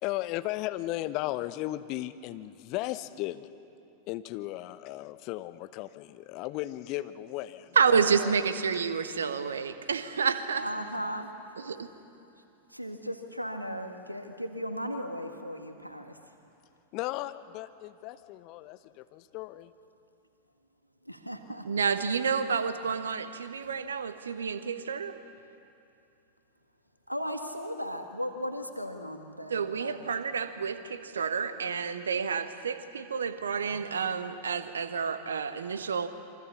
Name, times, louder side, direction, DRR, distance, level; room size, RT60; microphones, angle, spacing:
voice 1, 0.0-3.5 4.1-8.3 8.7-8.8 16.9-19.7, left 16 dB, 40° left, 12 dB, 0.9 m, -36 dB
voice 2, 7.7-10.7 11.6-11.9 21.6-25.1 29.5-36.1, right 6 dB, 70° right, 11 dB, 1.3 m, -29 dB
voice 3, 10.5-11.3 12.7-16.1 21.1-21.9 27.1-30.0, equal, 90° right, 6 dB, 1.9 m, -36 dB
27.0 x 24.5 x 7.0 m, 2.8 s
figure-of-eight pair, 90°, 0 cm